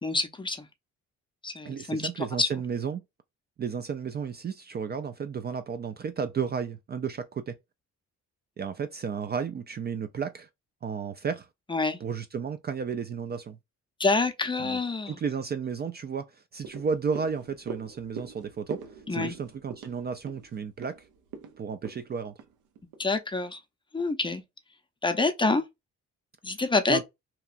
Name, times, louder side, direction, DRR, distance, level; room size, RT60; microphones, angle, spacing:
voice 1, 0.0-0.6 1.4-2.5 11.7-12.0 14.0-15.1 19.1-19.3 23.0-23.6 23.9-24.4 25.0-25.6 26.4-27.0, left 3 dB, 15° left, 0.6 m, -27 dB
voice 2, 1.6-3.0 3.6-7.5 8.6-10.5 10.8-11.5 12.0-13.6 14.6-14.8 15.1-18.8 19.1-21.0 21.6-22.3 26.9-27.0, right 6 dB, 35° right, 0.4 m, -33 dB
sound 1, 16.6-23.1 23.5-23.6, right 6 dB, 80° right, 0.7 m, -43 dB
2.9 x 2.3 x 2.4 m
cardioid pair, 90°, 30 cm